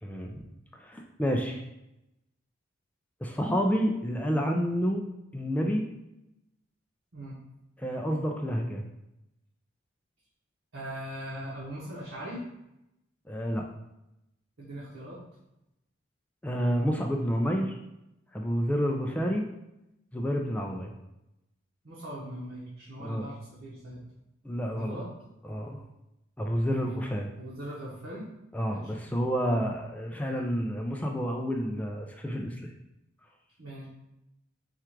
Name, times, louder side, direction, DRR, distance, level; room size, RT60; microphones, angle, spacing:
voice 1, 0.0-0.4 0.8-1.6 3.2-5.0 5.3-5.9 7.8-8.8 13.3-13.6 16.4-17.8 18.3-19.5 20.1-20.9 23.0-23.3 24.4-25.0 25.5-25.8 26.4-27.3 28.5-32.6, equal, 10° left, 1 dB, 0.3 m, -29 dB
voice 2, 10.7-12.4 14.6-15.2 21.8-24.0 24.7-25.1 26.7-27.0 27.4-28.3 28.7-28.9 33.6-33.8, equal, 90° right, -7 dB, 1.1 m, -40 dB
4.5 x 2.4 x 4.5 m, 0.88 s
head